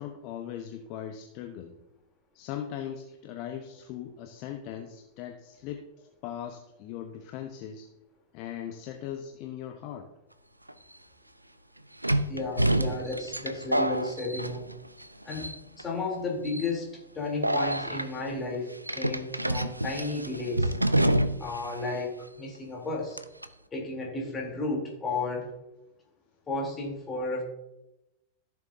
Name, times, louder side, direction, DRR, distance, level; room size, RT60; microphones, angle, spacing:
voice 1, 0.0-1.7 2.3-7.9 8.3-10.1, left 9 dB, 45° left, 5 dB, 0.9 m, -39 dB
sound 1, 10.7-10.8 12.0-15.0 15.3-15.8 16.4-16.7 17.4-18.1 18.9-21.6 21.9-22.0 23.2-23.5, right 1 dB, 85° right, 0.4 m, -27 dB
voice 2, 12.3-14.6 15.2-16.9 17.1-20.7 21.4-23.2 23.7-25.4 26.5-27.4, left 2 dB, 20° left, -2 dB, 3.3 m, -33 dB
14.5 x 7.0 x 2.7 m, 0.89 s
figure-of-eight pair, 90°, 0 cm